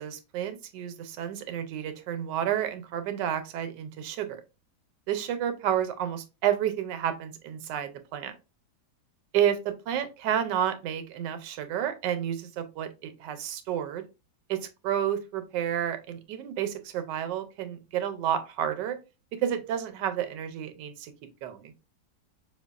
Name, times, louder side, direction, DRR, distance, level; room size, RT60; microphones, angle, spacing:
voice 1, 0.0-4.4 5.1-8.3 9.3-14.0 14.5-19.0 19.4-21.1 21.4-21.7, right 10 dB, 80° right, 9 dB, 1.2 m, -30 dB
5.1 x 2.2 x 2.3 m, 0.28 s
omnidirectional pair, 1.9 m